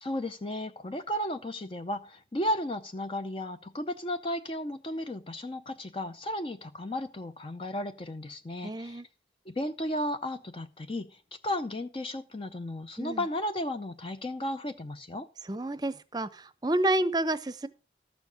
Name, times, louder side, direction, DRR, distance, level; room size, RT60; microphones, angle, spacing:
voice 1, 0.0-9.0 9.5-15.3, left 1 dB, 30° left, 0.6 m, -34 dB
voice 2, 8.6-9.1 13.0-13.2 15.5-17.7, right 1 dB, 25° right, 0.7 m, -29 dB
13.5 x 7.0 x 5.1 m
head